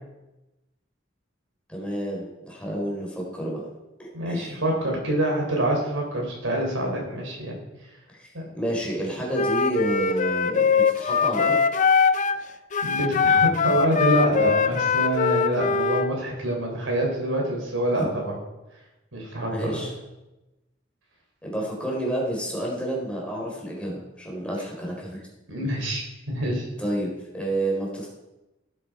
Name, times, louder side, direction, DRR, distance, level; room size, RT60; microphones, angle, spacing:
voice 1, 1.7-3.6 4.0-4.5 8.1-11.8 17.9-18.0 19.5-19.9 21.4-25.3 26.8-28.1, right 1 dB, 5° left, -3 dB, 3.9 m, -30 dB
voice 2, 4.1-7.6 8.3-8.4 12.8-18.3 19.1-19.8 25.5-26.7, right 1 dB, 85° right, 0 dB, 4.1 m, -26 dB
Wind instrument woodwind instrument, 9.3-12.4 12.7-16.1, left 5 dB, 40° left, 0.5 m, -22 dB
15.5 x 8.6 x 4.8 m, 1.0 s
head